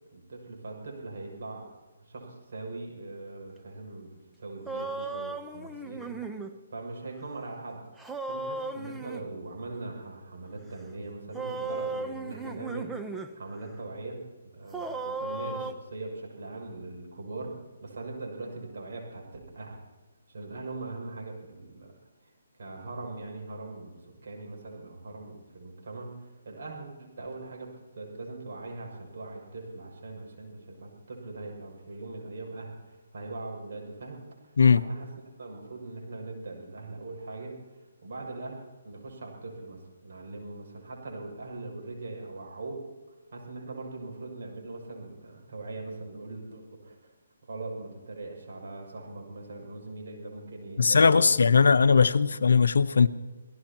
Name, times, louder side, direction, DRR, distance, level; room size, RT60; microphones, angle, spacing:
voice 1, 0.1-1.7 2.0-6.4 6.7-7.8 8.3-14.2 14.5-17.5 17.8-19.8 20.3-21.9 22.6-35.1 35.4-37.6 38.0-42.8 43.3-47.1 47.4-51.7 52.0-52.1, right 2 dB, 65° right, 0 dB, 6.7 m, -41 dB
sound 1, 4.7-6.5 8.0-9.3 11.3-13.3 13.7-13.8 14.7-15.7, right 3 dB, 5° right, 0.8 m, -36 dB
voice 2, 50.8-53.1, left 5 dB, 75° left, 13 dB, 0.8 m, -19 dB
28.0 x 17.5 x 3.0 m, 1.3 s
hypercardioid pair, 155°, 0 cm